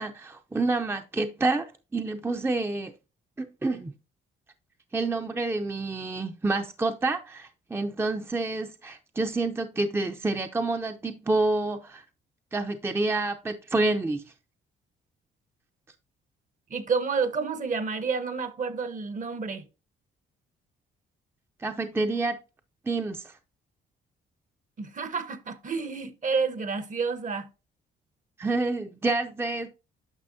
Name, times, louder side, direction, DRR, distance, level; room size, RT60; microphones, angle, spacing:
voice 1, 0.0-2.9 3.4-3.9 4.9-12.0 12.5-14.2 21.6-22.4 22.9-23.3 28.4-29.7, right 2 dB, 10° right, 0.6 m, -28 dB
voice 2, 16.7-19.7 24.8-27.5, right 5 dB, 40° right, 1.0 m, -29 dB
9.7 x 5.9 x 2.7 m
cardioid pair, 90°, 20 cm